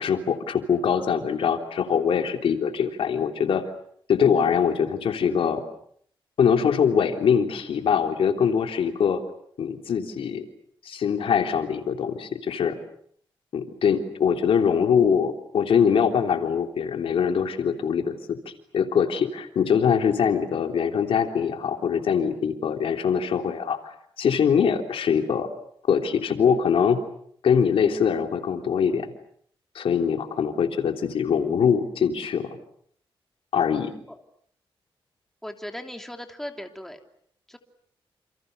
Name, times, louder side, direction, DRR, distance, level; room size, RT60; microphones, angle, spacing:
voice 1, 0.0-3.6 4.1-5.6 6.4-9.2 9.6-10.4 10.8-12.8 13.5-18.4 18.7-25.5 25.9-27.0 27.4-29.1 29.7-32.6 33.5-33.9, left 7 dB, 80° left, 5 dB, 3.4 m, -23 dB
voice 2, 35.4-37.0 37.5-37.6, left 1 dB, 5° left, 4 dB, 3.0 m, -37 dB
29.0 x 28.5 x 6.8 m, 0.65 s
wide cardioid pair, 125°, 9 cm